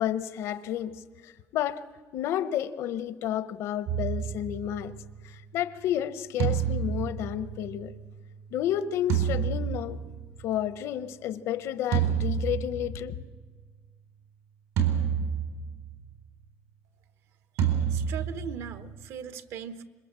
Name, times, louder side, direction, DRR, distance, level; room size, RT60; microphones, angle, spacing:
voice 1, 0.0-1.8 2.1-4.9 5.2-7.9 8.5-10.0 10.4-13.2, left 11 dB, 65° left, 0.8 m, -31 dB
sound 1, 3.9-5.2 6.4-8.1 9.1-10.4 11.9-13.3 14.8-15.9 17.6-19.0, right 8 dB, 85° right, 4.2 m, -29 dB
voice 2, 17.9-19.8, right 8 dB, 60° right, 1.0 m, -39 dB
26.5 x 22.5 x 7.5 m
cardioid pair, 170°, 5 cm